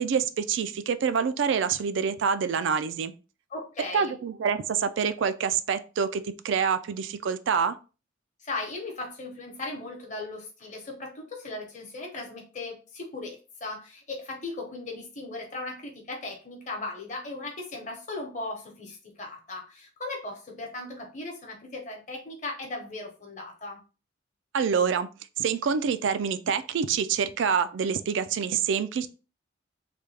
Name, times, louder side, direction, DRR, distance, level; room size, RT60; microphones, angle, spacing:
voice 1, 0.0-3.1 3.9-7.8 24.5-25.1 25.4-29.1, right 6 dB, 65° right, 0.3 m, -26 dB
voice 2, 3.5-4.2 8.4-23.8, left 2 dB, 35° left, 0.9 m, -37 dB
3.3 x 2.2 x 3.3 m
head